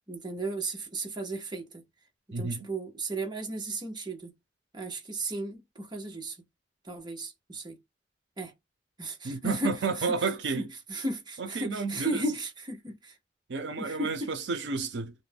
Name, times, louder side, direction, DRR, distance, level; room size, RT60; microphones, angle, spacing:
voice 1, 0.1-1.8 2.4-4.3 4.7-6.4 6.8-7.8 8.4-8.5 9.0-9.7 10.0-10.1 10.5-10.6 10.9-13.1 13.8-14.3, right 2 dB, 25° right, 0.8 m, -35 dB
voice 2, 2.3-2.7 9.2-10.6 11.4-12.2 13.5-15.1, right 4 dB, 75° right, 0.5 m, -31 dB
2.4 x 2.1 x 3.4 m
head